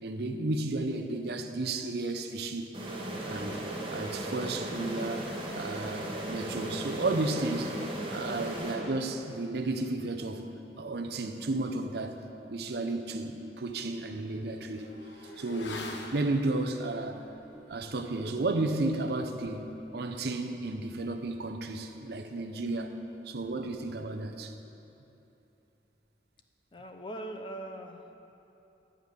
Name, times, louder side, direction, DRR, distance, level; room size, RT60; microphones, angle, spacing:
voice 1, 0.0-2.8 3.3-3.6 3.9-5.3 5.5-7.8 8.1-10.4 10.8-12.2 12.5-14.9 15.4-17.2 17.7-23.0 23.3-24.5, right 2 dB, 60° right, 6 dB, 0.6 m, -33 dB
sound 1, 2.7-9.4, right 1 dB, 30° right, 1.2 m, -37 dB
Motorcycle / Accelerating revving vroom, 13.3-23.1 23.3-23.4, left 2 dB, 90° left, 1.0 m, -49 dB
voice 2, 26.7-28.1, right 1 dB, 25° left, 5 dB, 0.6 m, -42 dB
11.0 x 5.1 x 8.1 m, 2.9 s
head